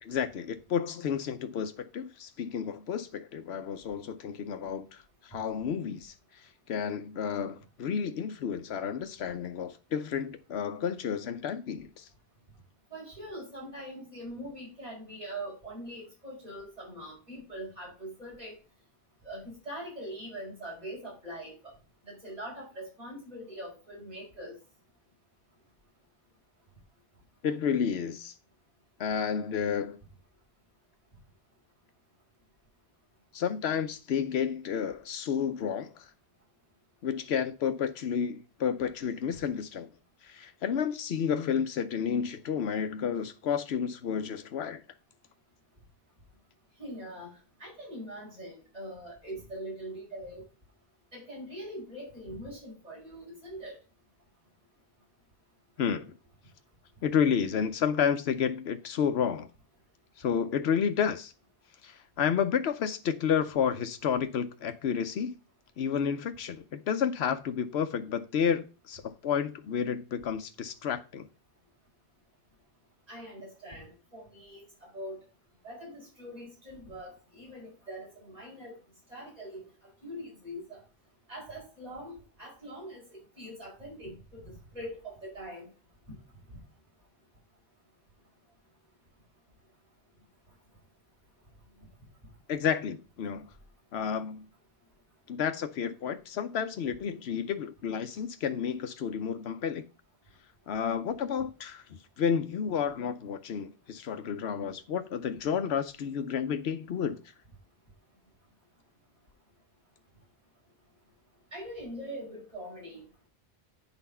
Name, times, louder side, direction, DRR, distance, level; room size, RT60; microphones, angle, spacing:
voice 1, 0.0-6.1 6.7-12.1 27.4-28.3 29.0-30.0 33.3-36.1 37.0-39.9 40.2-44.8 55.8-56.1 57.0-59.5 60.2-61.3 61.8-65.3 65.8-71.3 92.5-93.5 93.9-94.4 95.3-99.9 100.7-107.2, left 7 dB, 85° left, 1.0 m, -31 dB
voice 2, 12.9-18.5 19.2-21.5 22.1-24.6 39.3-39.4 46.8-47.3 47.6-50.4 51.1-53.7 73.1-75.2 75.6-78.7 79.1-80.8 81.3-85.7 111.5-113.0, equal, 40° right, 5.1 m, -42 dB
9.7 x 4.2 x 5.5 m
omnidirectional pair, 1.0 m